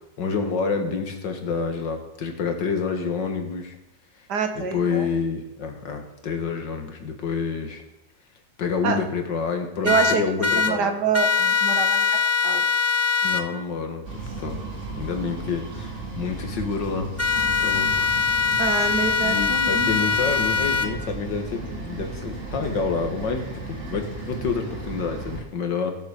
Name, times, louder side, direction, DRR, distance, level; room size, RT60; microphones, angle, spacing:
voice 1, 0.2-3.8 4.5-7.8 8.6-11.0 13.2-14.0 14.4-14.6 14.9-17.1 17.6-18.1 19.2-26.0, left 5 dB, 80° left, 5 dB, 2.3 m, -28 dB
voice 2, 4.3-5.1 8.8-9.0 9.8-10.3 10.6-12.6 18.6-20.0, right 6 dB, 70° right, 6 dB, 1.9 m, -26 dB
sound 1, 9.8-10.7 11.1-13.4 17.2-20.9, left 6 dB, 20° left, 0.4 m, -22 dB
sound 2, 14.0-25.4, right 3 dB, 45° right, 3.0 m, -35 dB
16.0 x 7.2 x 6.5 m, 0.91 s
omnidirectional pair, 1.9 m